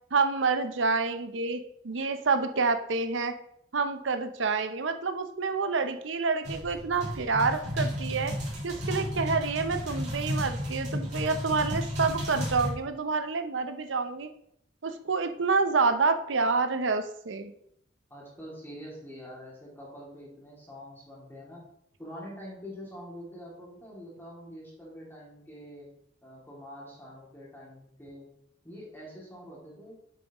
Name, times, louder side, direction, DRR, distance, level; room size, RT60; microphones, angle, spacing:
voice 1, 0.1-3.3 3.7-8.3 8.6-14.3 14.8-17.5, right 4 dB, 80° right, 8 dB, 0.7 m, -28 dB
sound 1, 6.4-12.7, equal, 40° right, 3.3 m, -33 dB
voice 2, 18.1-21.6 22.0-25.9 26.2-28.3 28.6-30.0, equal, 10° left, -5 dB, 2.5 m, -45 dB
7.7 x 7.0 x 3.0 m, 0.73 s
head